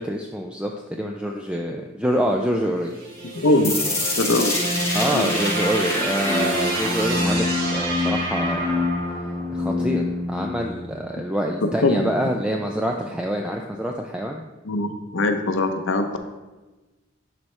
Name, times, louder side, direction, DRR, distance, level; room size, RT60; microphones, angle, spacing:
voice 1, 0.0-3.0 4.9-8.9 9.5-14.4, equal, 5° right, 1 dB, 0.3 m, -26 dB
sound 1, 2.8-11.1, left 1 dB, 50° right, 1.3 m, -26 dB
voice 2, 3.3-3.7 4.2-4.5 5.1-5.3 11.6-12.0 14.6-16.2, left 2 dB, 65° left, 7 dB, 0.7 m, -21 dB
sound 2, 3.6-9.6, left 2 dB, 15° left, 1.0 m, -29 dB
10.5 x 4.2 x 3.2 m, 1.2 s
head